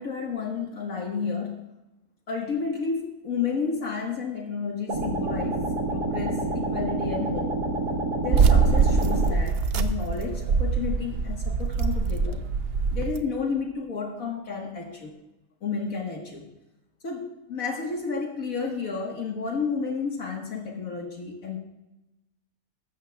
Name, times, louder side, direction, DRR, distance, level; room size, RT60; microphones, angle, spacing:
voice 1, 0.0-1.6 2.3-7.6 8.2-12.4 12.9-15.2 15.6-16.5 17.0-21.6, left 5 dB, 60° left, 1 dB, 1.8 m, -31 dB
sound 1, 4.9-9.4, right 2 dB, 85° right, 1.9 m, -28 dB
sound 2, 8.3-13.2, right 5 dB, 60° right, 0.6 m, -23 dB
14.5 x 12.5 x 2.3 m, 0.98 s
omnidirectional pair, 1.7 m